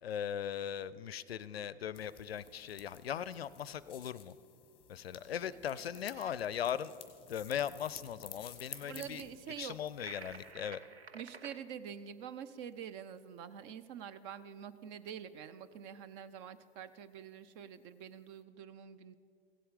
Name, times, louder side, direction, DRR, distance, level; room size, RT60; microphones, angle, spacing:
voice 1, 0.0-4.3 4.9-6.9 7.3-10.8, left 9 dB, 75° left, 18 dB, 0.5 m, -39 dB
sound 1, 1.9-10.5, left 9 dB, 15° left, 1.0 m, -54 dB
voice 2, 8.8-9.8 11.1-19.2, right 8 dB, 30° right, 13 dB, 0.5 m, -46 dB
sound 2, 10.0-11.6, right 5 dB, 90° right, 0.7 m, -50 dB
16.0 x 7.7 x 4.9 m, 2.4 s
figure-of-eight pair, 110°, 31 cm